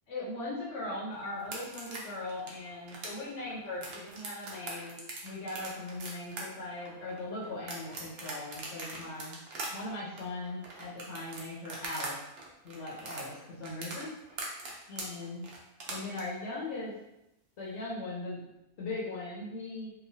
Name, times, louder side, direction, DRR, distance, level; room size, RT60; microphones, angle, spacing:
voice 1, 0.1-9.4 9.7-12.2 12.6-14.6 14.9-15.5 15.9-16.9 17.6-18.4 18.8-19.9, left 2 dB, 80° left, -6 dB, 1.0 m, -39 dB
sound 1, 1.4-12.1 12.4-16.2, right 3 dB, 60° right, 0.8 m, -41 dB
2.9 x 2.2 x 2.6 m, 0.87 s
omnidirectional pair, 1.2 m